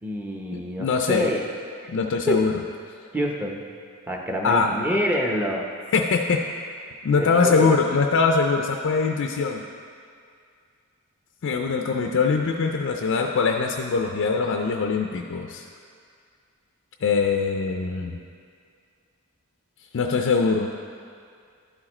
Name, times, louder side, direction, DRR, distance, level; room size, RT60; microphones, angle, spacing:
voice 1, 0.0-1.5 2.3-2.4 3.1-3.6 4.1-5.6 7.2-7.8, equal, 10° right, 0 dB, 0.7 m, -26 dB
voice 2, 0.5-1.3 1.9-2.5 4.4-4.7 5.9-6.4 7.0-9.6 11.4-15.6 17.0-18.2 19.9-20.7, left 4 dB, 55° left, 2 dB, 0.4 m, -22 dB
11.5 x 4.8 x 4.3 m, 2.3 s
head